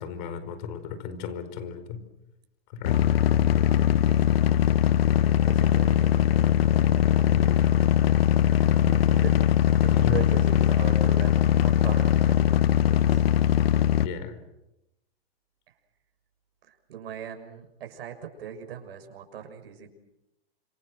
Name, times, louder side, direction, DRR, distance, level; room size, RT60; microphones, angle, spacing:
voice 1, 0.0-2.0 2.7-3.9 7.3-7.9 10.0-10.2 14.0-14.4, left 7 dB, 45° left, 12 dB, 4.8 m, -36 dB
sound 1, 2.8-14.1, left 10 dB, 70° left, 1.1 m, -21 dB
voice 2, 5.3-6.5 8.6-13.2 15.7-15.8 16.6-19.9, right 8 dB, 70° right, 5 dB, 6.5 m, -40 dB
30.0 x 27.5 x 6.5 m, 0.89 s
hypercardioid pair, 145°, 31 cm